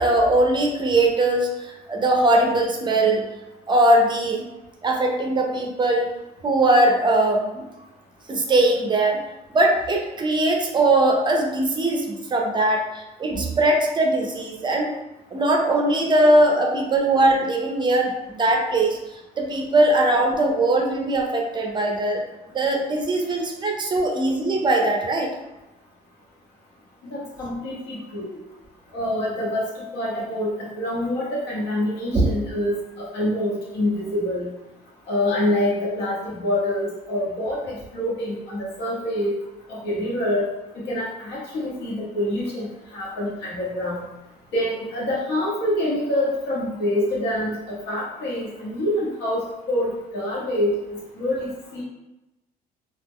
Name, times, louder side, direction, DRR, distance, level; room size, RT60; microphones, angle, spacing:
voice 1, 0.0-3.3 3.7-4.5 4.8-6.1 6.4-7.6 8.3-9.2 9.5-14.9 15.3-19.0 19.4-22.2 22.5-25.3 32.1-32.3, right 1 dB, 25° right, 2 dB, 0.4 m, -20 dB
voice 2, 27.1-28.4 28.9-34.5 35.1-39.3 39.7-40.4 40.7-42.7 42.9-44.0 44.5-49.4 49.7-50.8 51.1-51.8, left 1 dB, 80° left, -5 dB, 1.0 m, -26 dB
2.3 x 2.0 x 3.5 m, 0.99 s
cardioid pair, 110°, 17 cm